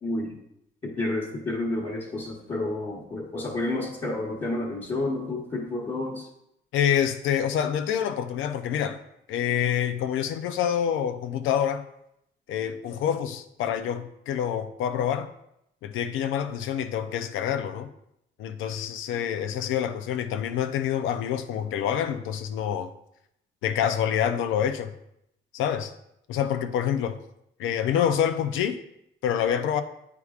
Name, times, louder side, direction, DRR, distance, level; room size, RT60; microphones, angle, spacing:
voice 1, 0.0-0.4 0.8-6.3, left 2 dB, 30° left, 1.2 m, -30 dB
voice 2, 6.7-9.0 9.3-11.8 12.5-15.3 15.8-17.9 18.4-22.9 23.6-24.9 25.5-25.9 26.3-27.2 27.6-28.8 29.2-29.8, left 9 dB, 90° left, 0.5 m, -27 dB
8.3 x 4.7 x 2.4 m
cardioid pair, 90°, 20 cm